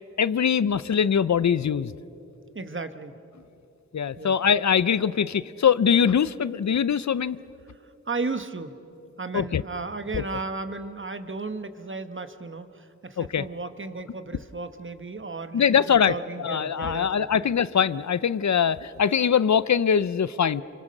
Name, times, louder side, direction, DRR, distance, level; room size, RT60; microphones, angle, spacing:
voice 1, 0.2-1.9 3.9-7.4 9.3-9.6 10.1-10.2 13.2-13.4 15.5-16.1 16.4-20.6, left 7 dB, 65° left, 17 dB, 0.6 m, -22 dB
voice 2, 2.5-3.1 4.2-4.3 8.1-8.7 9.2-17.5, right 3 dB, 40° right, 9 dB, 1.3 m, -34 dB
28.0 x 24.0 x 6.6 m, 2.7 s
wide cardioid pair, 65°, 30 cm